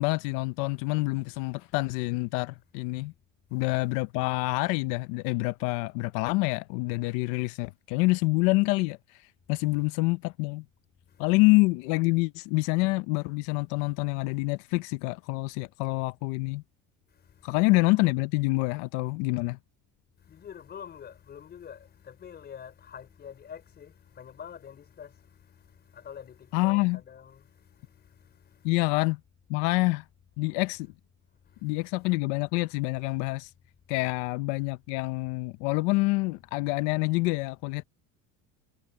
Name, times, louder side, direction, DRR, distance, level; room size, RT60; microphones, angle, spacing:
voice 1, 0.0-3.1 3.5-9.2 9.5-10.6 11.2-16.6 17.4-19.6 26.5-27.0 28.6-29.2 29.5-30.0 30.4-30.9 31.6-33.5 33.9-37.8, left 23 dB, 90° left, 0.8 m, -27 dB
voice 2, 3.5-3.9 9.6-9.9 11.1-11.4 17.1-17.6 20.2-29.0 31.5-32.1, left 8 dB, 25° left, 4.7 m, -47 dB
cardioid pair, 170°, 36 cm